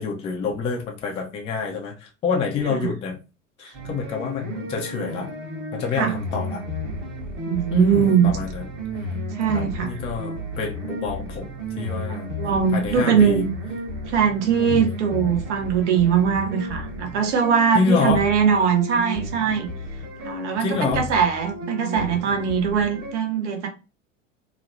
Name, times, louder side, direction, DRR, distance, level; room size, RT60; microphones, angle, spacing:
voice 1, 0.0-3.2 3.6-5.3 5.7-6.6 7.7-8.7 9.5-11.5 11.8-12.3 12.7-13.5 14.7-14.8 17.7-18.3 20.6-21.1, left 5 dB, 15° left, 0.4 m, -27 dB
sound 1, 3.7-23.1, equal, 30° right, 1.0 m, -33 dB
voice 2, 7.5-8.3 9.4-9.9 12.4-13.5 14.1-19.7 20.2-23.7, right 7 dB, 60° right, 0.7 m, -21 dB
2.9 x 2.1 x 2.5 m
figure-of-eight pair, 85°, 39 cm